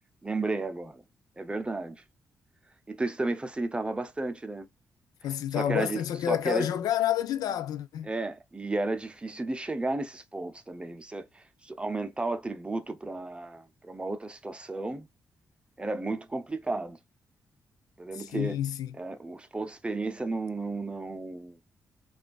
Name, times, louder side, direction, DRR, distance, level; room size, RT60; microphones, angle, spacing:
voice 1, 0.2-1.0 1.4-2.0 2.9-4.7 5.6-6.0 6.3-6.7 8.0-15.1 15.8-17.0 18.0-18.6 19.0-21.6, right 2 dB, 15° right, 0.5 m, -33 dB
voice 2, 5.2-8.1 18.1-19.0, left 11 dB, 85° left, 0.4 m, -29 dB
4.9 x 2.4 x 2.3 m
cardioid pair, 95°, 6 cm